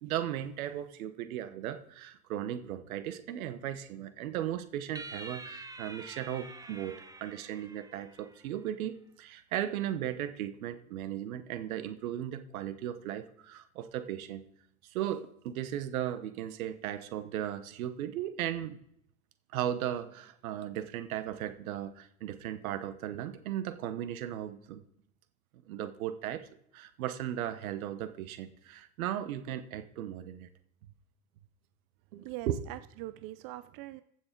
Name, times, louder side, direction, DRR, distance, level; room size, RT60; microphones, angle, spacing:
voice 1, 0.0-14.5 14.9-18.8 19.5-24.8 25.6-26.5 26.7-30.5 32.1-32.6, right 11 dB, 80° right, 12 dB, 1.1 m, -36 dB
sound 1, 5.0-8.5, right 2 dB, 10° right, 1.0 m, -47 dB
voice 2, 32.2-34.0, right 16 dB, 55° right, 13 dB, 0.6 m, -42 dB
15.0 x 6.4 x 4.5 m, 0.71 s
hypercardioid pair, 75°, 41 cm